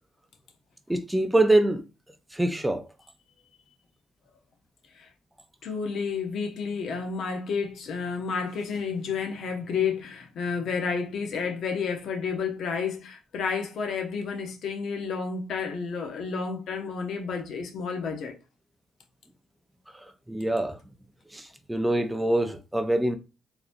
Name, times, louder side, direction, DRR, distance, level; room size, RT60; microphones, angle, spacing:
voice 1, 0.9-1.8 2.3-2.8 20.3-20.8 21.3-23.2, right 1 dB, 5° right, 0.5 m, -24 dB
voice 2, 5.6-18.3, left 5 dB, 70° left, 0.8 m, -31 dB
3.9 x 2.9 x 2.5 m
cardioid pair, 90°, 0 cm